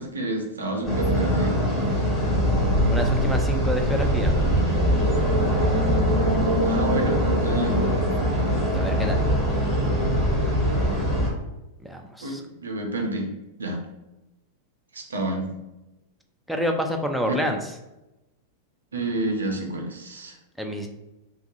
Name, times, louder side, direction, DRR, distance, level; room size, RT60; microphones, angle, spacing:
voice 1, 0.0-1.6 6.6-7.8 12.2-13.3 13.6-13.8 14.9-15.5 17.3-17.4 18.9-20.3, right 1 dB, 70° right, 2 dB, 0.5 m, -29 dB
sound 1, 0.8-11.3, equal, 20° left, 1.3 m, -22 dB
voice 2, 2.9-4.3 8.7-9.2 11.8-12.4 16.5-17.7 20.6-20.9, equal, ahead, 2 dB, 0.3 m, -28 dB
2.6 x 2.3 x 2.6 m, 0.97 s
figure-of-eight pair, 90°, 0 cm